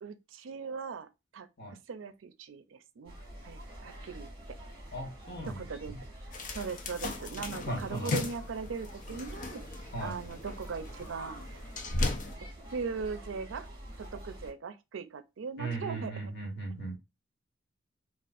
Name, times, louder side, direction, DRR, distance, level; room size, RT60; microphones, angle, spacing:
voice 1, 0.0-1.5 1.9-3.2 3.4-4.6 5.5-5.9 6.3-9.6 10.0-11.4 12.7-13.7 14.0-16.2, right 5 dB, 85° right, 0.4 m, -39 dB
sound 1, 3.0-14.5, equal, 25° right, 1.9 m, -46 dB
voice 2, 4.9-5.6 7.7-8.1 9.9-10.2 15.6-17.0, right 2 dB, 60° left, 1.3 m, -37 dB
sound 2, 6.3-12.3, left 3 dB, 45° left, 0.6 m, -37 dB
4.2 x 2.4 x 2.4 m
head